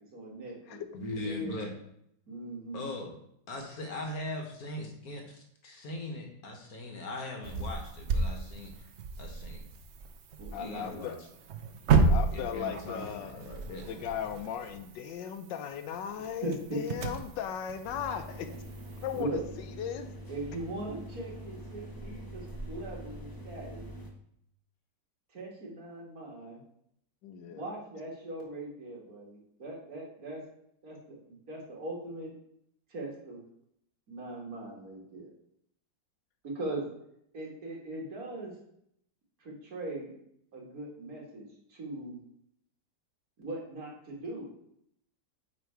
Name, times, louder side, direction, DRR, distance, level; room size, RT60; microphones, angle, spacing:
voice 1, 0.1-1.6 2.3-2.9 10.4-11.0 16.4-17.0 19.1-19.4 20.3-23.9 25.3-26.6 27.5-30.4 30.8-32.3 32.9-33.4 34.1-35.3 36.4-36.8 37.3-38.5 39.4-40.1 40.5-42.2 43.4-44.5, right 1 dB, 50° right, -3 dB, 2.2 m, -40 dB
voice 2, 0.9-1.7 2.7-3.1 3.5-8.9 9.2-9.6 10.6-11.1 12.3-13.9, left 1 dB, 55° left, 2 dB, 1.5 m, -40 dB
sound 1, 7.4-19.2, right 4 dB, 80° right, 0.6 m, -33 dB
voice 3, 10.5-11.2 12.1-13.4 13.9-18.5 19.0-19.4 19.8-20.1 27.2-27.7, left 9 dB, 85° left, 8 dB, 1.3 m, -37 dB
sound 2, 17.8-24.1, right 1 dB, 20° left, 0.6 m, -44 dB
8.2 x 3.7 x 4.6 m, 0.73 s
omnidirectional pair, 2.0 m